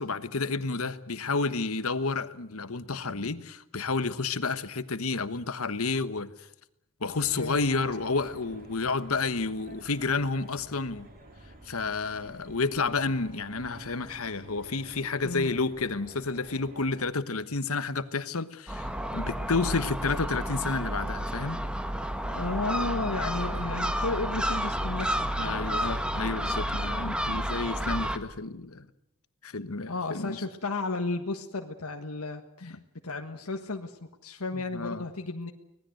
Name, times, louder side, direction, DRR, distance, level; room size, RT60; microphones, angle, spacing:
voice 1, 0.0-6.5 7.0-11.1 11.6-21.6 25.3-28.9 29.4-30.4 32.6-32.8 34.7-35.0, left 3 dB, 70° left, 1.3 m, -30 dB
sound 1, 7.1-17.0, right 1 dB, 45° right, 4.9 m, -50 dB
voice 2, 7.4-7.7 15.2-15.5 22.3-26.0 29.8-32.8 33.0-35.5, left 3 dB, 90° left, 1.5 m, -33 dB
Gull seagull, 18.7-28.2, equal, 5° right, 1.4 m, -31 dB
25.0 x 19.0 x 7.9 m
head